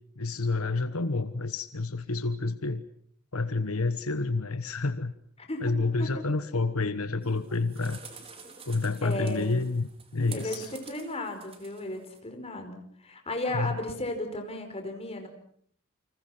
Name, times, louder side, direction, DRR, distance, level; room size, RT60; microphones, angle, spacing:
voice 1, 0.2-2.8 3.3-5.1 5.6-8.0 8.7-10.7 13.5-13.7, left 3 dB, 80° left, 11 dB, 1.3 m, -29 dB
sound 1, 7.2-12.2, right 5 dB, 25° right, 4.2 m, -48 dB
voice 2, 9.0-9.5 10.3-15.3, left 1 dB, 30° left, 5 dB, 5.2 m, -35 dB
30.0 x 25.5 x 6.1 m, 0.63 s
head